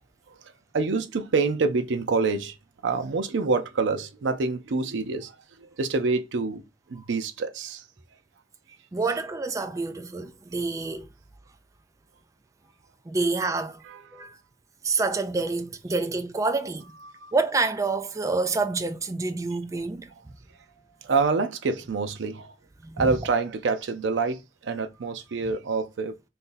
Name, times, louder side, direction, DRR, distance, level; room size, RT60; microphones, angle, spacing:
voice 1, 0.3-2.6 2.8-6.6 6.9-7.8 13.9-14.3 17.0-17.3 21.0-22.6 23.0-26.2, right 4 dB, 90° right, 0.5 m, -27 dB
voice 2, 8.9-11.1 13.1-13.8 14.1-14.4 14.8-16.9 17.3-20.2 22.8-23.1, right 3 dB, 20° right, 0.4 m, -27 dB
2.6 x 2.6 x 3.8 m
head